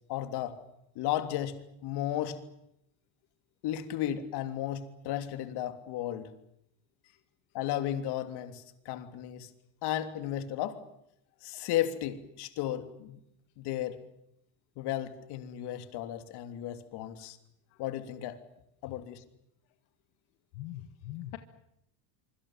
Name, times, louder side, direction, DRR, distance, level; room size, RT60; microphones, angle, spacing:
voice 1, 0.1-0.6 0.9-2.4 3.6-6.3 7.5-9.5 9.8-10.8 11.4-13.2 13.6-14.0 14.8-17.4 17.8-18.4 18.8-19.2, left 12 dB, 60° left, 8 dB, 3.2 m, -34 dB
voice 2, 20.5-21.4, left 14 dB, 85° left, 8 dB, 1.8 m, -42 dB
26.5 x 24.5 x 7.5 m, 0.78 s
cardioid pair, 145°, 44 cm